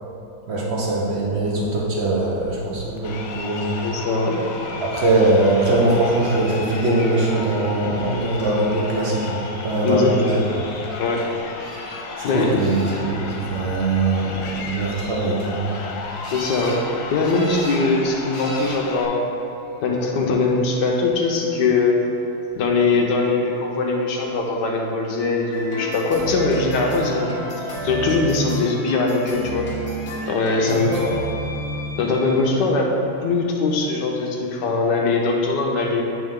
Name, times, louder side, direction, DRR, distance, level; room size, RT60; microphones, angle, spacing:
voice 1, 0.5-3.7 4.8-10.6 12.2-15.7 30.7-31.0, right 2 dB, 75° right, -4 dB, 0.6 m, -21 dB
Crowd, 3.0-19.1, left 4 dB, 85° left, 1.5 m, -34 dB
voice 2, 3.8-4.5 9.8-10.1 11.0-11.4 12.2-12.6 16.3-16.8 17.1-19.2 19.8-22.0 22.6-29.7 30.3-31.3 32.0-32.9 33.2-36.0, left 3 dB, 65° left, 0 dB, 1.1 m, -21 dB
sound 1, 11.6-12.0 12.6-13.3 16.2-16.8 17.2-17.8 18.3-18.8 19.7-20.2 26.4-26.5 26.9-27.0, equal, 45° left, 1.5 m, -37 dB
sound 2, 25.5-32.4, right 1 dB, 30° left, 1.0 m, -30 dB
9.5 x 3.5 x 3.6 m, 2.9 s
omnidirectional pair, 2.2 m